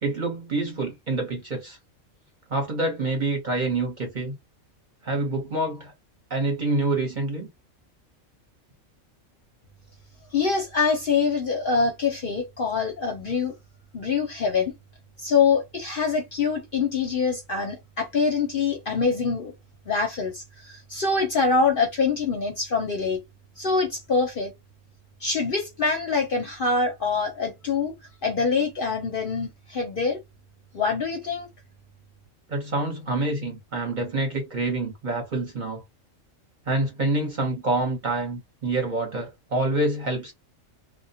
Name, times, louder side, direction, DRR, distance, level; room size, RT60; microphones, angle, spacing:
voice 1, 0.0-1.8 2.5-4.3 5.0-5.9 6.3-7.5 32.5-35.8 36.7-40.3, right 2 dB, 45° right, 0.8 m, -27 dB
voice 2, 10.3-13.5 13.9-14.7 15.2-19.5 19.9-23.2 23.6-24.5 25.2-27.9 28.2-30.2 30.7-31.5, left 4 dB, 55° left, 0.7 m, -25 dB
2.2 x 2.1 x 2.6 m
omnidirectional pair, 1.4 m